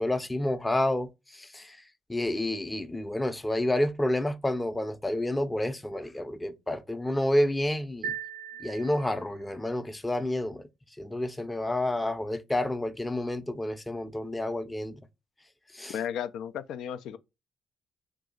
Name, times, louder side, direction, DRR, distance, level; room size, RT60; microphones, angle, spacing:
voice 1, 0.0-1.8 2.1-8.1 8.6-10.7 11.0-15.0 15.7-15.9, left 1 dB, 15° left, 0.6 m, -29 dB
sound 1, 8.0-9.5, right 8 dB, 85° right, 0.3 m, -38 dB
voice 2, 15.9-17.2, left 9 dB, 70° left, 0.3 m, -34 dB
2.7 x 2.3 x 3.8 m
hypercardioid pair, 50°, 0 cm